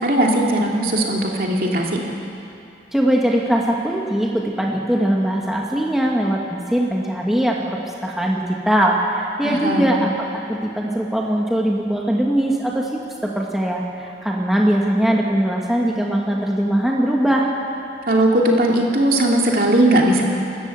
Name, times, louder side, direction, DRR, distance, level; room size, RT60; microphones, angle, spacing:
voice 1, 0.0-2.0 9.4-9.9 18.1-20.2, right 1 dB, 55° right, -1 dB, 2.8 m, -18 dB
voice 2, 2.9-17.5, right 1 dB, ahead, -2 dB, 1.6 m, -21 dB
28.5 x 14.0 x 8.1 m, 2.7 s
head